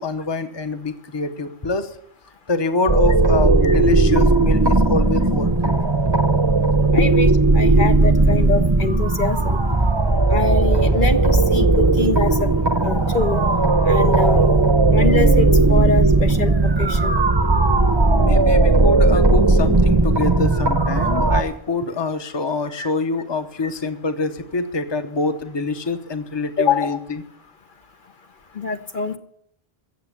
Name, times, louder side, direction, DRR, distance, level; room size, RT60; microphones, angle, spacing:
voice 1, 0.0-2.0 2.5-5.7 11.3-11.4 18.2-27.2, left 3 dB, 25° left, 9 dB, 0.9 m, -25 dB
sound 1, 2.9-21.4, right 2 dB, 25° right, 0.9 m, -16 dB
voice 2, 6.9-7.3 7.5-9.6 10.3-12.5 12.8-13.4 13.8-14.5 14.9-17.2 22.7-22.9 23.6-23.7 26.6-27.0 28.6-29.2, left 4 dB, 55° left, 7 dB, 1.1 m, -24 dB
14.5 x 8.1 x 8.3 m, 0.71 s
omnidirectional pair, 1.0 m